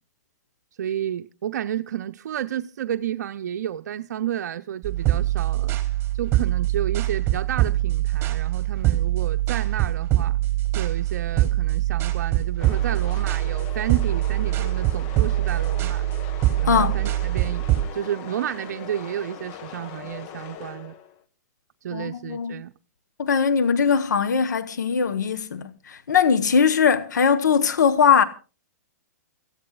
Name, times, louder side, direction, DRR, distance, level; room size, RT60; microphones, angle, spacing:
voice 1, 0.8-5.8 6.2-10.4 10.8-16.1 16.6-17.7 17.9-21.0 21.8-22.7, right 10 dB, 70° right, 0.6 m, -31 dB
sound 1, 4.8-17.8, right 15 dB, 25° right, 3.0 m, -23 dB
sound 2, 12.6-21.2, left 9 dB, 45° left, 1.4 m, -40 dB
voice 2, 16.7-17.0 21.9-22.6 23.2-28.2, left 6 dB, 85° left, 1.1 m, -20 dB
29.0 x 15.0 x 2.3 m
hypercardioid pair, 130°, 9 cm